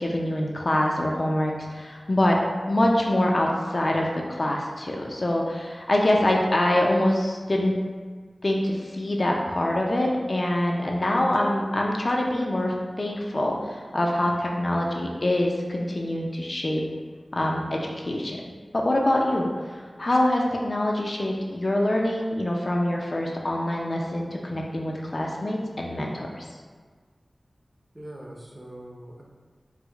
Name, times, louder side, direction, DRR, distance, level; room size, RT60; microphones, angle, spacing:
voice 1, 0.0-2.4 2.7-7.7 8.4-16.8 17.3-18.4 18.7-26.5, left 1 dB, 45° left, -1 dB, 0.4 m, -25 dB
voice 2, 27.9-29.2, right 1 dB, 25° right, -3 dB, 0.6 m, -42 dB
4.5 x 2.0 x 2.3 m, 1.5 s
wide cardioid pair, 70°, 0 cm